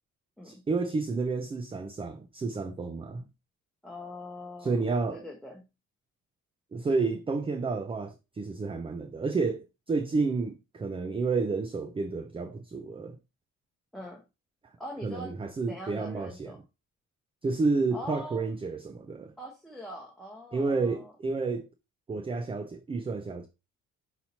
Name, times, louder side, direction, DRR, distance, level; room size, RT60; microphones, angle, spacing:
voice 1, 0.4-3.2 4.6-5.2 6.7-13.2 15.0-16.6 17.4-19.3 20.5-21.7 22.1-23.5, right 4 dB, 20° right, 0.4 m, -30 dB
voice 2, 3.8-4.8 5.1-5.7 13.9-14.2 14.8-15.3 15.7-16.6 17.9-18.5 19.4-21.1, left 1 dB, ahead, 0.9 m, -42 dB
5.6 x 2.8 x 2.7 m
cardioid pair, 90°, 30 cm